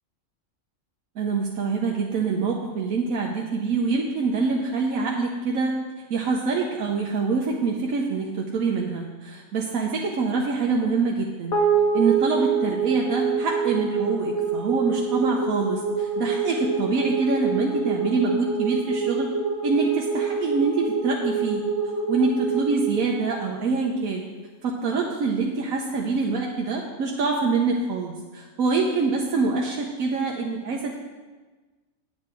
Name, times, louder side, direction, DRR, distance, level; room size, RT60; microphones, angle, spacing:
voice 1, 1.2-5.7 6.1-11.6 11.9-19.3 19.6-21.7 22.1-24.2 24.6-30.9, right 4 dB, 80° right, -1 dB, 1.3 m, -25 dB
sound 1, 11.5-24.0, right 5 dB, 85° left, 1.8 m, -26 dB
8.8 x 8.6 x 4.5 m, 1.3 s
omnidirectional pair, 1.4 m